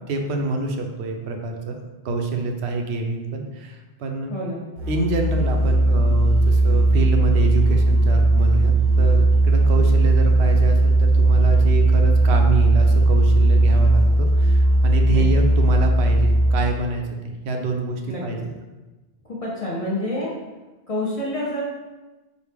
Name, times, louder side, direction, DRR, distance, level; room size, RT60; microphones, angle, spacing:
voice 1, 0.1-1.8 2.0-4.3 4.9-18.4, right 3 dB, 85° right, 3 dB, 0.8 m, -26 dB
Musical instrument, 4.8-16.8, right 2 dB, 55° right, 0.7 m, -17 dB
voice 2, 19.4-20.3 20.9-21.6, left 1 dB, 40° left, -6 dB, 0.7 m, -27 dB
5.0 x 2.1 x 3.3 m, 1.2 s
omnidirectional pair, 1.1 m